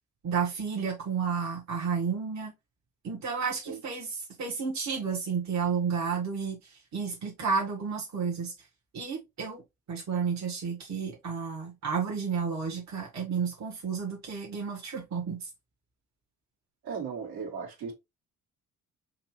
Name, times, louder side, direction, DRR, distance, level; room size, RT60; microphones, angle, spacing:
voice 1, 0.2-2.5 3.0-4.1 4.4-8.5 8.9-9.6 9.9-15.5, right 6 dB, 40° right, 1.6 m, -31 dB
voice 2, 16.8-17.9, right 6 dB, 60° right, 2.0 m, -37 dB
5.8 x 2.9 x 3.0 m
figure-of-eight pair, 50°, 43 cm